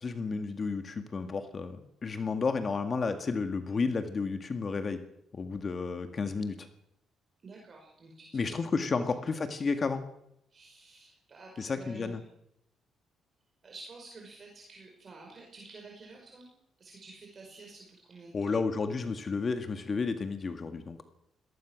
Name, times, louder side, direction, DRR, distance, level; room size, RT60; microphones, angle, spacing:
voice 1, 0.0-5.0 5.3-6.7 8.3-10.0 11.6-12.2 18.3-21.0, left 4 dB, 40° left, 7 dB, 1.9 m, -32 dB
voice 2, 7.4-8.6 8.9-9.3 10.5-12.2 13.6-16.5 16.8-18.5, right 3 dB, 45° right, 0 dB, 5.1 m, -50 dB
22.5 x 18.5 x 6.3 m, 0.77 s
cardioid pair, 90°, 0 cm